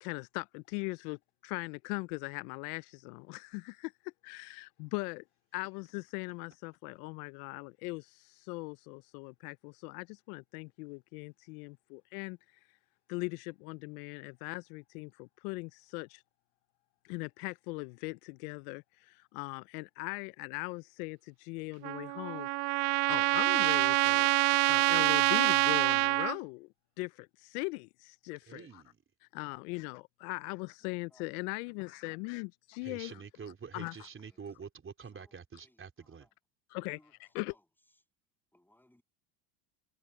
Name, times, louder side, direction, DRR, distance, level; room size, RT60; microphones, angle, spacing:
voice 1, 0.0-5.2 5.5-12.4 13.1-16.2 17.0-22.7 23.1-24.3 24.7-26.7 27.0-28.8 29.3-33.2 33.7-33.9 36.7-37.5, left 27 dB, 70° left, 0.7 m, -40 dB
Trumpet, 21.8-26.4, right 29 dB, 55° right, 0.5 m, -26 dB
voice 2, 28.5-29.0 32.8-36.3, right 6 dB, 25° right, 4.4 m, -47 dB
voice 3, 30.8-31.3 34.2-34.4 35.1-35.4 35.6-36.3 36.9-37.1 37.4-37.6 38.5-39.0, left 1 dB, 5° left, 7.6 m, -66 dB
supercardioid pair, 95°, 47 cm